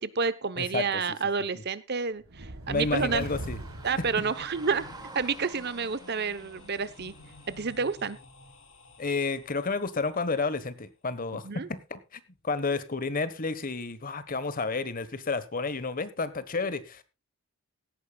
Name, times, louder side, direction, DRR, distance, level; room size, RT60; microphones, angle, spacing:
voice 1, 0.0-3.3 3.8-4.9 5.1-7.1 7.5-8.2 11.4-11.7, right 5 dB, 50° right, 0.9 m, -29 dB
sound 1, 2.2-5.0, right 1 dB, 80° right, 1.8 m, -41 dB
sound 2, 2.6-7.8, right 2 dB, 20° right, 2.3 m, -50 dB
voice 2, 2.7-3.6 9.0-17.0, left 4 dB, 40° left, 1.3 m, -31 dB
sound 3, 3.3-10.2, left 1 dB, 65° left, 2.6 m, -51 dB
17.0 x 14.0 x 2.4 m
head